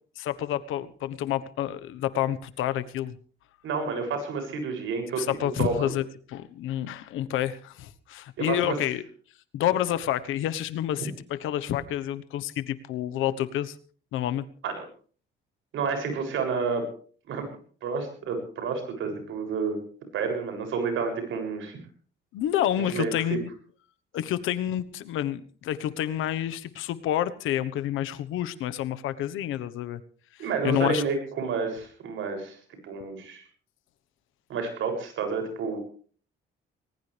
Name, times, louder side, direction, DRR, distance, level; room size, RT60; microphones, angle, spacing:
voice 1, 0.2-3.2 5.2-9.0 9.5-13.8 14.1-14.4 22.3-23.5 24.1-30.0 30.4-31.0, left 12 dB, 90° left, 13 dB, 1.3 m, -29 dB
voice 2, 3.6-5.2 5.6-5.8 8.4-8.8 11.0-11.1 14.6-14.8 15.7-16.9 17.3-17.5 17.8-19.8 20.1-21.8 22.9-23.4 30.4-32.6 32.8-33.4 34.5-35.8, right 5 dB, 80° right, 5 dB, 7.1 m, -30 dB
20.5 x 19.5 x 3.4 m, 0.44 s
cardioid pair, 90°, 20 cm